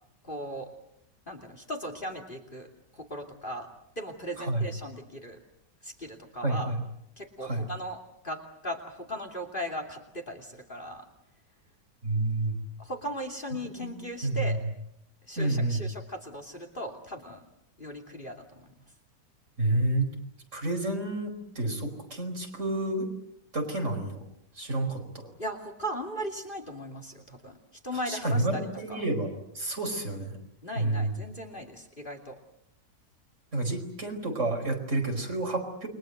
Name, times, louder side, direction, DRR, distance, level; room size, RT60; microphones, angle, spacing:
voice 1, 0.2-0.7 1.3-2.7 2.9-3.7 4.0-5.4 5.8-6.7 7.2-11.1 12.8-14.6 15.3-17.4 17.8-18.7 25.4-27.6 27.8-29.0 30.6-32.4, equal, 30° left, 5 dB, 3.0 m, -38 dB
voice 2, 4.4-4.7 6.4-6.8 7.4-7.7 12.0-12.6 13.5-13.9 14.2-14.6 15.4-15.9 19.6-20.1 20.5-23.1 23.5-24.3 24.6-25.3 28.1-30.4 30.7-31.2 33.5-35.9, right 2 dB, 40° right, 4 dB, 5.3 m, -29 dB
29.5 x 23.5 x 7.9 m, 0.76 s
omnidirectional pair, 1.9 m